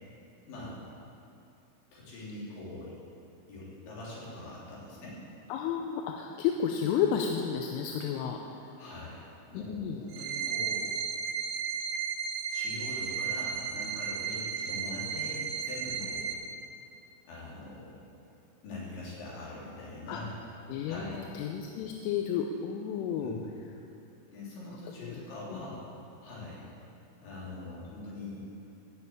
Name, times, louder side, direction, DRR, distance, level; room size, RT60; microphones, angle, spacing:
voice 1, 0.5-0.9 1.9-2.9 3.5-5.2 8.8-9.2 9.5-9.8 10.0-10.9 12.5-16.4 17.3-18.0 18.6-20.3 20.9-21.2 23.2-23.4 24.3-25.9 26.2-26.7 27.2-28.5, left 2 dB, 65° left, -7 dB, 5.5 m, -43 dB
voice 2, 5.5-8.7 9.5-10.1 20.1-20.2 20.7-23.4 25.0-25.6, left 8 dB, 85° left, 2 dB, 3.2 m, -32 dB
sound 1, 10.1-16.3, right 6 dB, 65° right, 2.6 m, -34 dB
15.0 x 6.8 x 8.5 m, 2.7 s
omnidirectional pair, 5.7 m